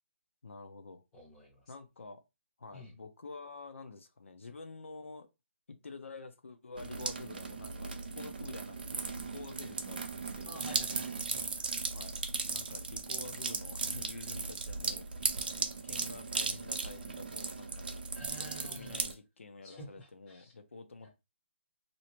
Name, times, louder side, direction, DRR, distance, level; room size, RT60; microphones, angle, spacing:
voice 1, 0.4-1.0 1.7-2.2 2.6-5.3 5.7-10.8 11.9-12.1 12.5-17.8 18.4-21.1, left 3 dB, 75° left, 5 dB, 0.7 m, -49 dB
voice 2, 1.1-1.7 2.7-2.9 10.5-11.5 18.1-19.0 19.6-20.5 21.0-21.1, equal, 5° left, -6 dB, 0.6 m, -50 dB
sound 1, 6.8-19.1, right 4 dB, 45° right, 0.6 m, -37 dB
3.3 x 2.7 x 3.0 m, 0.25 s
hypercardioid pair, 175°, 7 cm